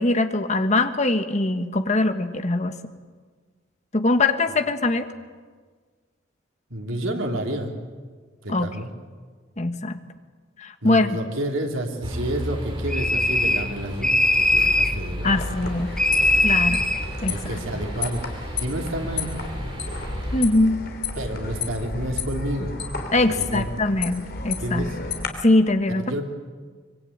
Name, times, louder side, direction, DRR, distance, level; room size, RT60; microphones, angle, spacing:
voice 1, 0.0-2.8 3.9-5.1 8.5-8.7 9.6-10.0 10.6-11.1 15.2-15.9 16.4-16.8 17.2-17.6 20.3-20.8 23.1-24.9 25.4-26.1, left 2 dB, 35° left, 8 dB, 1.4 m, -22 dB
voice 2, 6.7-7.7 8.4-8.9 10.8-15.5 15.8-16.7 17.3-19.3 21.1-22.8 23.3-23.7 24.6-25.0 26.0-26.2, right 1 dB, 85° right, 2 dB, 3.4 m, -30 dB
sound 1, 12.0-20.4, equal, 25° right, 4.5 m, -33 dB
sound 2, 12.9-13.7 14.0-15.0 16.0-17.0, left 2 dB, 5° left, 1.2 m, -20 dB
sound 3, 15.2-25.3, left 4 dB, 55° left, 3.3 m, -32 dB
24.5 x 23.0 x 8.8 m, 1.5 s
head